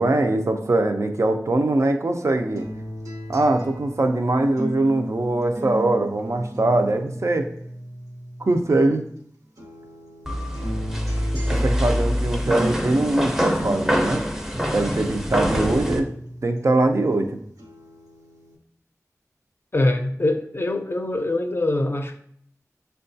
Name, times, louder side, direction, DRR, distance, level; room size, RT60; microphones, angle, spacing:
voice 1, 0.0-2.7 3.3-7.5 8.4-9.0 11.5-14.2 14.7-16.1 16.4-17.4, right 2 dB, 55° right, 6 dB, 0.5 m, -22 dB
sound 1, 2.5-9.2 9.6-17.2 17.6-18.5, equal, 85° right, 0.9 m, -36 dB
sound 2, 10.3-16.0, equal, 5° right, 0.5 m, -25 dB
voice 2, 19.7-22.2, left 2 dB, 40° left, 5 dB, 0.4 m, -23 dB
6.2 x 2.3 x 2.6 m, 0.65 s
wide cardioid pair, 65°, 6 cm